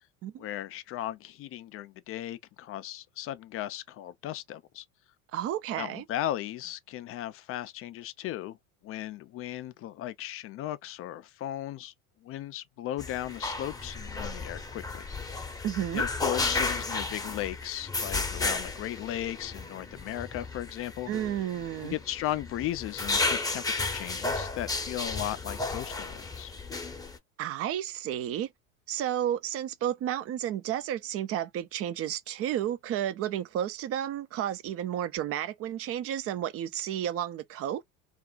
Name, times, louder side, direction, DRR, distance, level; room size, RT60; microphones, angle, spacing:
voice 1, 0.4-4.8 5.8-8.6 8.8-11.9 12.2-15.0 15.3-15.6 15.9-21.1 21.8-26.5, left 13 dB, 35° left, 0.4 m, -36 dB
voice 2, 5.3-6.0 15.6-16.0 21.1-22.0 27.4-28.5 28.9-37.8, right 11 dB, 35° right, 0.4 m, -32 dB
sound 1, 13.0-27.2, left 3 dB, 10° left, 0.7 m, -33 dB
2.4 x 2.3 x 3.7 m
hypercardioid pair, 80°, 43 cm